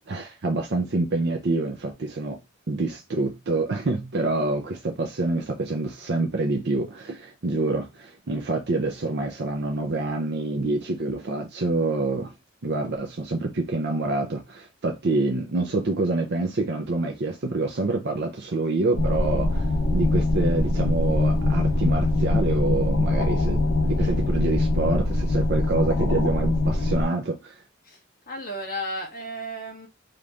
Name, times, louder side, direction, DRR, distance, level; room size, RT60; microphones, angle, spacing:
voice 1, 0.1-2.4 2.7-12.4 12.6-27.6, right 2 dB, 55° right, 0.6 m, -27 dB
sound 1, 18.9-27.0, left 2 dB, 90° left, 0.9 m, -23 dB
voice 2, 24.0-24.4 27.8-28.0 28.3-29.9, equal, 50° left, 1.5 m, -34 dB
5.0 x 3.0 x 2.5 m
head